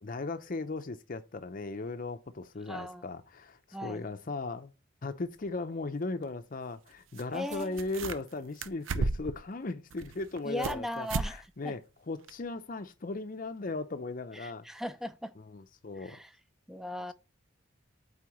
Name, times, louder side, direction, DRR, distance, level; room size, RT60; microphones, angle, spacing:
voice 1, 0.0-4.7 5.0-14.7 15.5-16.2, left 3 dB, 45° left, 0.6 m, -37 dB
voice 2, 2.7-3.1 3.7-4.0 7.3-7.8 10.4-11.7 14.3-15.3 16.0-16.3 16.7-17.1, left 1 dB, ahead, 0.4 m, -38 dB
sound 1, 5.5-5.6 7.2-7.3 7.5-8.3 8.6-9.4 9.9-10.8 11.1-11.3 11.7-11.8 12.3-12.4, right 3 dB, 80° right, 0.6 m, -33 dB
8.5 x 4.3 x 3.0 m
head